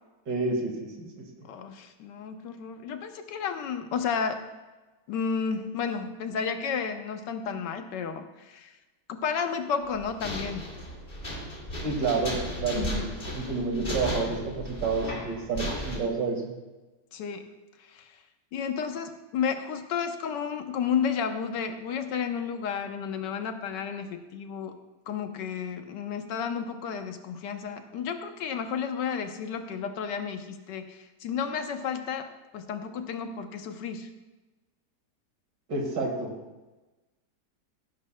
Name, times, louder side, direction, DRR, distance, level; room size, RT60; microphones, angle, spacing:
voice 1, 0.3-1.2 11.8-16.5 35.7-36.3, right 3 dB, 85° right, 1 dB, 2.5 m, -29 dB
voice 2, 1.4-4.4 5.1-8.7 9.1-10.7 12.7-13.1 17.1-17.5 17.8-18.2 18.5-24.8 25.1-32.3 32.5-34.1, left 6 dB, 85° left, 7 dB, 1.5 m, -32 dB
sound 1, 9.8-16.0, equal, 30° left, 2.5 m, -35 dB
16.0 x 10.0 x 2.2 m, 1.2 s
omnidirectional pair, 1.8 m